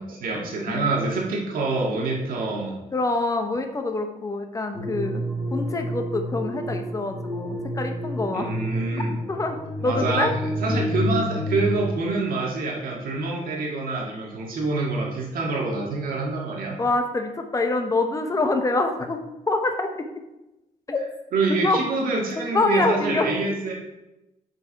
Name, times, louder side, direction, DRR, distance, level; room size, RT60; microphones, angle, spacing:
voice 1, 0.0-2.8 8.3-9.2 9.8-16.8 21.3-23.7, right 3 dB, 80° right, -1 dB, 1.8 m, -26 dB
voice 2, 2.9-5.2 5.5-8.5 9.3-9.6 9.8-10.3 16.8-20.1 20.9-21.0 21.5-21.8 22.5-23.3, left 2 dB, 25° left, 5 dB, 0.9 m, -25 dB
sound 1, 4.7-11.7, equal, 5° left, 2.0 m, -29 dB
6.9 x 4.7 x 4.6 m, 0.96 s
cardioid pair, 100°, 15 cm